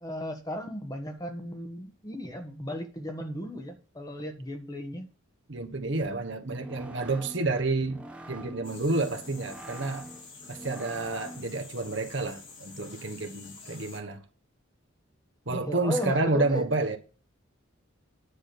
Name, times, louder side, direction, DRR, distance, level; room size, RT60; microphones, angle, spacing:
voice 1, 0.0-5.1 15.5-16.6, equal, 15° left, 1.3 m, -35 dB
voice 2, 5.5-10.1 10.5-14.2 15.5-17.0, right 2 dB, 60° right, 1.4 m, -30 dB
sound 1, 6.3-11.6, right 1 dB, 5° right, 1.1 m, -45 dB
sound 2, 8.6-14.0, left 4 dB, 60° left, 3.3 m, -48 dB
10.0 x 6.2 x 6.8 m
head